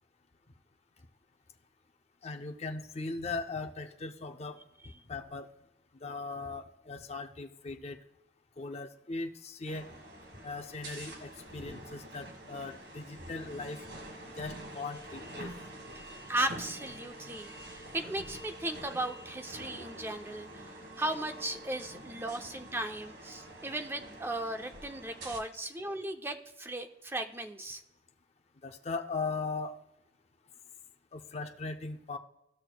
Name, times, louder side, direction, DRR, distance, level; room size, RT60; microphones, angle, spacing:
voice 1, 2.2-4.6 5.1-5.5 6.0-8.0 8.6-9.9 10.4-13.8 14.4-15.5 28.6-29.8 31.1-32.2, left 3 dB, 35° left, 5 dB, 0.6 m, -39 dB
sound 1, 9.7-25.4, right 1 dB, 80° right, 1.5 m, -47 dB
voice 2, 16.3-27.8, right 1 dB, 15° right, 6 dB, 0.6 m, -36 dB
15.0 x 6.2 x 2.2 m, 0.88 s
head